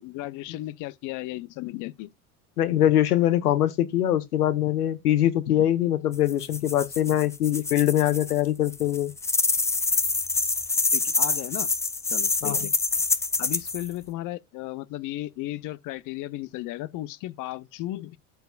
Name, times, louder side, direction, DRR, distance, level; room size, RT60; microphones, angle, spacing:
voice 1, 0.0-2.1 10.9-11.7 12.1-12.7 13.4-18.2, left 16 dB, 45° left, 0.6 m, -35 dB
voice 2, 2.6-9.1 12.4-12.7, left 12 dB, 85° left, 0.9 m, -23 dB
sound 1, 6.1-8.4 8.7-13.9, left 3 dB, 5° left, 0.3 m, -26 dB
12.5 x 4.7 x 2.4 m
hypercardioid pair, 80°, 44 cm